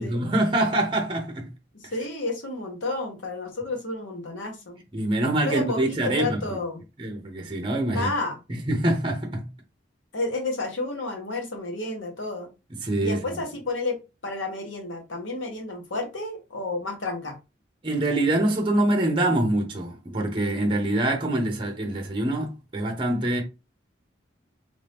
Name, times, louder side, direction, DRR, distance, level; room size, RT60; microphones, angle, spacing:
voice 1, 0.0-1.5 1.8-1.9 4.9-6.6 7.0-8.1 8.5-9.5 12.8-13.2 17.8-23.4, right 1 dB, 25° right, 0.7 m, -25 dB
voice 2, 1.7-4.8 5.4-6.8 7.9-8.4 10.1-12.5 13.0-17.4, left 2 dB, 85° left, 1.2 m, -31 dB
3.5 x 2.7 x 3.4 m
head